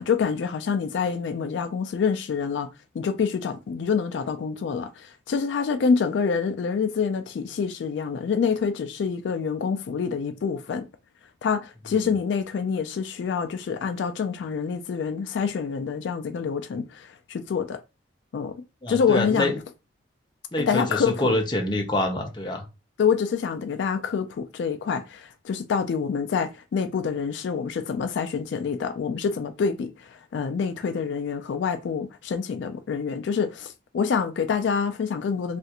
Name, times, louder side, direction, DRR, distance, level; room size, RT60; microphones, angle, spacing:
voice 1, 0.0-2.7 2.9-10.9 11.4-17.8 18.3-19.5 20.6-21.4 23.0-35.6, left 6 dB, 70° left, 0.3 m, -26 dB
voice 2, 18.8-19.6 20.5-22.6, left 1 dB, 25° left, 0.6 m, -26 dB
3.2 x 2.4 x 2.8 m
head